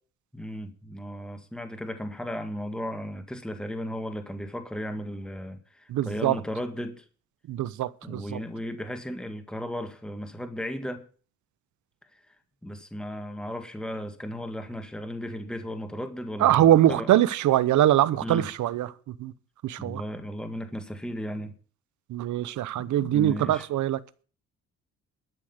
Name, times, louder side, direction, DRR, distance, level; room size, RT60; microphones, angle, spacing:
voice 1, 0.3-7.1 8.0-11.1 12.1-12.2 12.6-17.1 18.2-18.5 19.8-21.5 22.7-23.7, equal, 5° left, 1.7 m, -35 dB
voice 2, 5.9-6.4 7.5-8.4 16.4-18.9 19.2-19.3 19.6-20.0 22.1-24.0, right 12 dB, 75° right, 0.8 m, -23 dB
12.5 x 6.3 x 8.0 m
cardioid pair, 90°, 30 cm